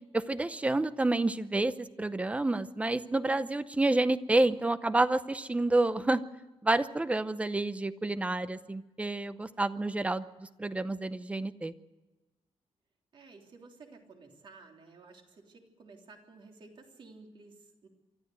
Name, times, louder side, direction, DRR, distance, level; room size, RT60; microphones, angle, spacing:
voice 1, 0.1-6.2 6.6-11.7, right 2 dB, 10° right, 13 dB, 0.7 m, -29 dB
voice 2, 13.1-17.9, right 3 dB, 45° right, 2 dB, 3.3 m, -54 dB
24.5 x 13.5 x 7.9 m, 1.1 s
wide cardioid pair, 170°, 11 cm